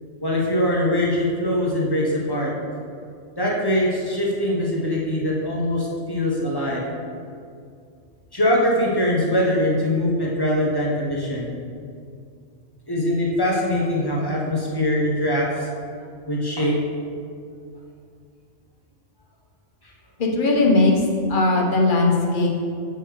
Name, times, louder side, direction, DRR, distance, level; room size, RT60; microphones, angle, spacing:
voice 1, 0.2-2.5 3.4-6.8 8.3-11.5 12.9-15.7 16.3-16.8 19.8-19.9, left 1 dB, 20° left, -4 dB, 1.2 m, -22 dB
voice 2, 20.2-21.0 21.3-22.5, left 2 dB, 45° left, -1 dB, 1.2 m, -18 dB
7.9 x 4.4 x 4.7 m, 2.3 s
omnidirectional pair, 1.2 m